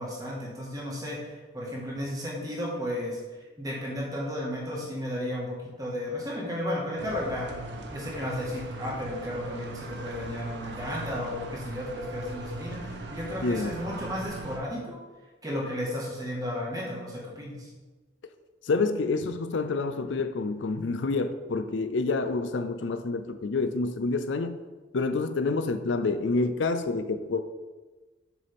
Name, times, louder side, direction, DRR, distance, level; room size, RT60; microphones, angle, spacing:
voice 1, 0.0-3.2 3.6-7.5 7.9-15.0 15.4-17.7, left 1 dB, 20° right, -3 dB, 1.6 m, -34 dB
sound 1, 7.0-14.6, right 2 dB, 70° right, 0.8 m, -39 dB
voice 2, 13.4-13.7 18.6-24.6 24.9-27.4, left 3 dB, 80° left, 9 dB, 0.5 m, -28 dB
7.1 x 6.7 x 3.5 m, 1.2 s
head